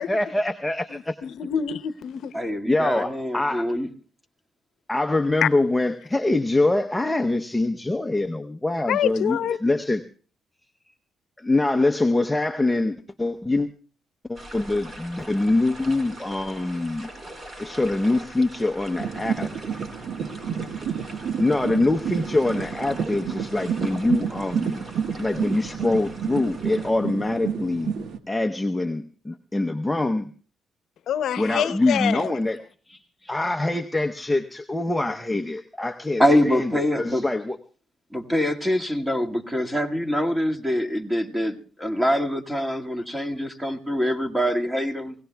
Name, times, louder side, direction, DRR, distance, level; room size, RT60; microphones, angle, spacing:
voice 1, 0.0-1.2 2.6-3.7 4.9-10.0 11.4-13.7 14.3-17.1 17.6-19.5 20.2-20.3 21.4-24.8 25.2-28.0 28.3-30.3 31.4-32.6 32.9-37.6, left 2 dB, 10° left, 0.8 m, -24 dB
voice 2, 0.9-2.4 5.4-5.5 8.9-9.6 31.1-32.3, left 9 dB, 70° left, 0.8 m, -26 dB
voice 3, 2.3-3.9 36.2-37.3 38.1-45.1, equal, 10° right, 2.0 m, -24 dB
sound 1, 14.3-26.9, right 1 dB, 35° right, 4.7 m, -42 dB
sound 2, 19.0-28.2, right 7 dB, 70° right, 1.3 m, -30 dB
28.5 x 17.5 x 2.3 m
cardioid pair, 90°, 0 cm